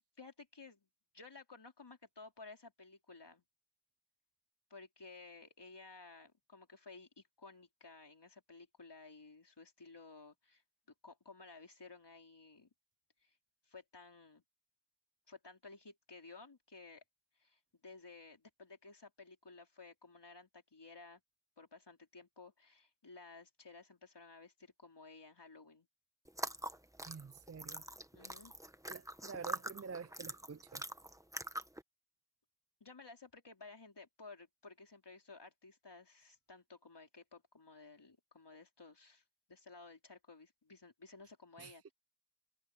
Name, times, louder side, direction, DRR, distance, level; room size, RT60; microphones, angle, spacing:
voice 1, 0.2-0.9 1.1-3.4 4.7-10.6 11.0-12.7 13.2-13.4 13.6-14.4 15.3-17.0 17.4-21.2 21.6-25.9 28.1-28.5 32.8-41.9, left 3 dB, 60° left, 4.4 m, -56 dB
sound 1, 26.3-31.8, right 1 dB, 5° right, 1.2 m, -44 dB
voice 2, 27.0-27.8 28.9-30.8 41.6-41.9, right 5 dB, 35° right, 0.5 m, -48 dB
wide cardioid pair, 55°, 47 cm